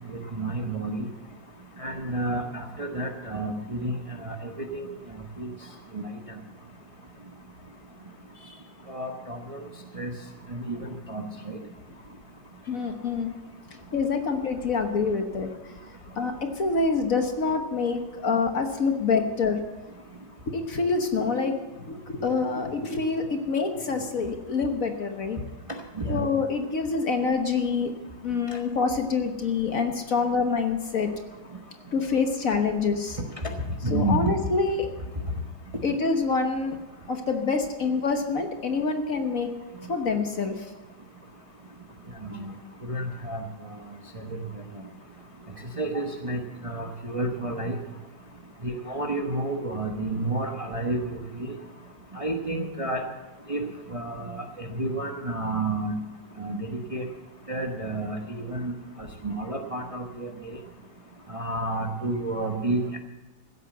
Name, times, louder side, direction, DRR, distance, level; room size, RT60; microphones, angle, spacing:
voice 1, 0.1-1.1 1.8-4.0 4.2-4.9 5.4-5.5 5.9-6.1 8.9-9.7 9.9-10.1 10.5-11.6 26.0-26.2 33.4-33.5 33.8-34.3 42.2-42.5 42.8-43.5 44.1-44.3 45.8-47.8 48.6-51.6 52.1-53.0 53.5-53.6 53.9-55.9 56.4-57.1 57.5-58.7 59.2-60.3 61.3-63.0, right 2 dB, 25° right, 2 dB, 0.9 m, -30 dB
voice 2, 12.7-13.3 13.9-15.5 16.2-19.6 20.5-25.4 26.1-27.9 28.2-31.1 31.9-33.2 33.9-34.9 35.8-36.8 37.1-39.5 39.9-40.7, left 4 dB, 50° left, 5 dB, 1.5 m, -26 dB
15.5 x 8.2 x 7.9 m, 1.1 s
omnidirectional pair, 2.0 m